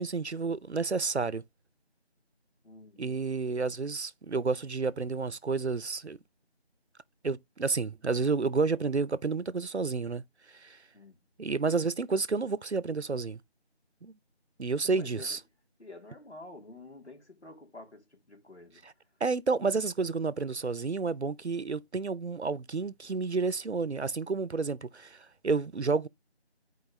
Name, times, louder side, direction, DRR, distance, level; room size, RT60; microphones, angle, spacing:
voice 1, 0.0-1.4 3.0-6.2 7.2-10.2 10.5-10.8 11.4-13.4 14.0-14.1 14.6-15.4 18.8-18.9 19.2-26.1, right 4 dB, 80° right, 0.7 m, -30 dB
voice 2, 2.6-3.2 10.9-11.2 14.8-15.4 15.8-18.8, left 2 dB, 80° left, 3.1 m, -49 dB
11.0 x 4.6 x 3.1 m
figure-of-eight pair, 170°, 33 cm